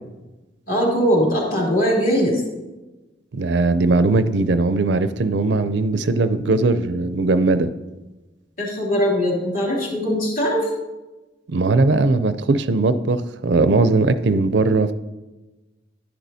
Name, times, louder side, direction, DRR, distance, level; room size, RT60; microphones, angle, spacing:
voice 1, 0.7-2.4 8.6-10.7, equal, 45° left, -3 dB, 2.7 m, -20 dB
voice 2, 3.3-7.7 11.5-14.9, right 3 dB, 65° right, 12 dB, 0.4 m, -19 dB
10.5 x 10.5 x 2.7 m, 1.1 s
head